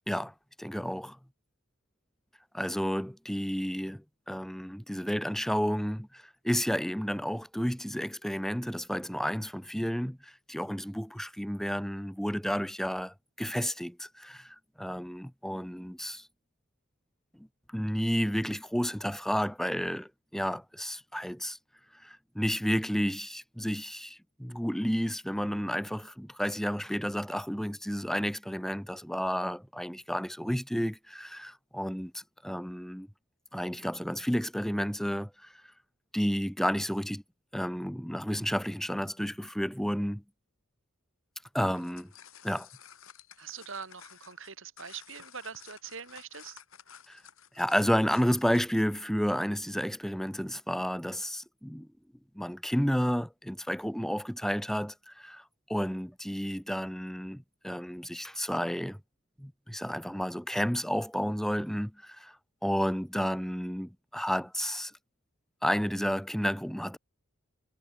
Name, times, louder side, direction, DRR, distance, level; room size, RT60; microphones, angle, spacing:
voice 1, 0.1-1.2 2.5-16.3 17.3-17.5 17.7-21.6 22.0-33.1 33.5-35.5 36.1-37.2 37.5-40.2 41.5-42.1 42.4-42.7 47.1-47.2 47.5-51.9 52.3-55.4 55.7-59.0 59.4-62.4 62.6-64.9 65.6-67.0, equal, ahead, 1.4 m, -31 dB
sound 1, 41.8-48.9, left 8 dB, 65° left, 5.5 m, -53 dB
voice 2, 43.4-46.6, right 6 dB, 60° right, 5.0 m, -43 dB
head